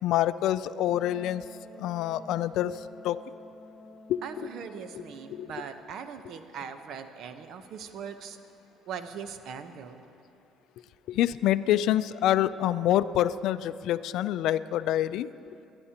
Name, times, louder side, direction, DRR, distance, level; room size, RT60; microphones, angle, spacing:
voice 1, 0.0-1.4 1.8-3.2 4.1-4.5 4.9-5.0 5.3-5.5 11.1-15.3, left 12 dB, 75° left, 15 dB, 0.4 m, -26 dB
Wind instrument woodwind instrument, 0.9-5.7, left 2 dB, 50° left, 0.8 m, -50 dB
voice 2, 4.2-8.4 8.9-10.0, right 6 dB, 65° right, 9 dB, 0.9 m, -40 dB
25.5 x 10.5 x 2.9 m, 2.7 s
supercardioid pair, 85°, 0 cm